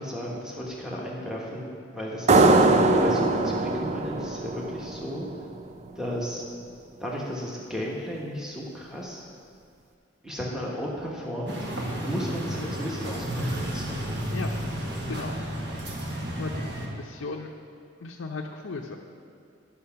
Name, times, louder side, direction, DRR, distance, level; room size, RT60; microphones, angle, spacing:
voice 1, 0.0-2.7 3.0-5.3 5.9-6.4 7.0-9.2 10.2-11.6 12.0-14.2, equal, 5° right, -4 dB, 1.1 m, -34 dB
sound 1, 2.3-5.6, right 2 dB, 35° right, 0.4 m, -21 dB
sound 2, 11.5-16.9, right 1 dB, 55° right, 1.2 m, -32 dB
voice 2, 15.1-15.4 16.4-17.5 18.0-19.0, left 3 dB, 90° left, -1 dB, 0.7 m, -36 dB
11.0 x 5.9 x 5.7 m, 2.3 s
head